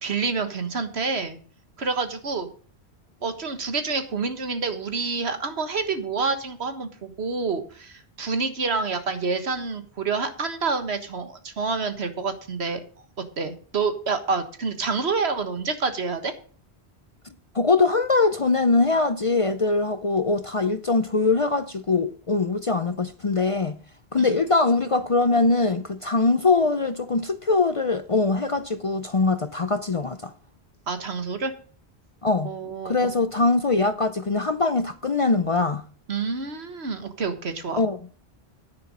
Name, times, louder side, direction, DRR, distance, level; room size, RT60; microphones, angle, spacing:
voice 1, 0.0-1.4 1.8-2.5 3.2-12.8 13.4-16.3 24.2-24.3 30.9-31.5 32.4-33.1 36.1-37.8, right 4 dB, 75° right, 1.7 m, -28 dB
voice 2, 17.5-23.8 24.1-30.3 32.2-32.5 32.8-35.8 37.8-38.0, left 3 dB, 40° left, 0.5 m, -22 dB
10.0 x 9.8 x 5.3 m
omnidirectional pair, 1.1 m